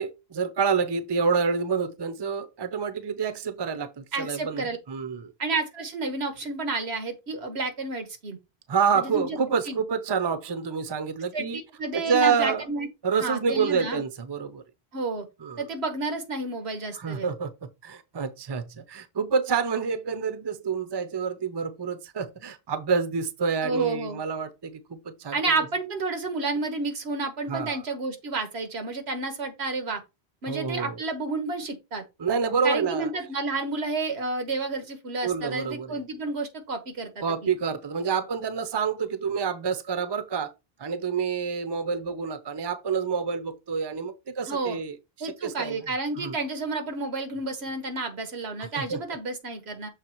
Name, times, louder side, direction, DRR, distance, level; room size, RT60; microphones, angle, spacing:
voice 1, 0.0-5.3 8.7-11.6 11.9-12.6 13.0-14.6 15.4-15.7 17.0-17.5 17.8-25.6 27.5-27.8 30.5-31.0 32.2-33.1 35.2-36.0 37.2-40.5 40.8-45.8 46.2-46.4 48.7-49.0, right 5 dB, 30° right, 0.6 m, -28 dB
voice 2, 4.1-4.8 5.4-8.4 8.9-9.8 11.3-12.9 13.2-14.0 14.9-15.3 15.6-17.3 23.6-24.2 25.3-30.0 30.4-32.0 32.6-37.5 44.5-44.8 45.2-49.9, right 3 dB, 85° right, 1.4 m, -30 dB
6.6 x 3.3 x 4.5 m
omnidirectional pair, 1.1 m